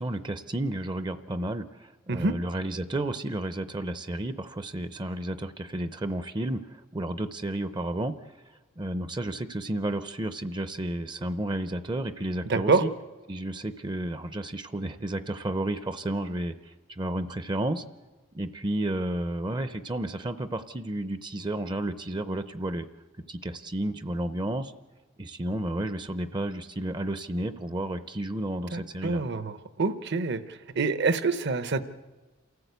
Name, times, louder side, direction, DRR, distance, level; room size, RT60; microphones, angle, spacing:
voice 1, 0.0-8.2 8.8-12.9 13.3-17.8 18.3-22.9 23.3-24.7 25.2-29.2, right 1 dB, 20° right, 12 dB, 0.6 m, -32 dB
voice 2, 12.5-12.8 28.7-30.4 30.8-31.8, right 4 dB, 55° right, 12 dB, 0.9 m, -26 dB
28.0 x 14.0 x 8.1 m, 1.3 s
head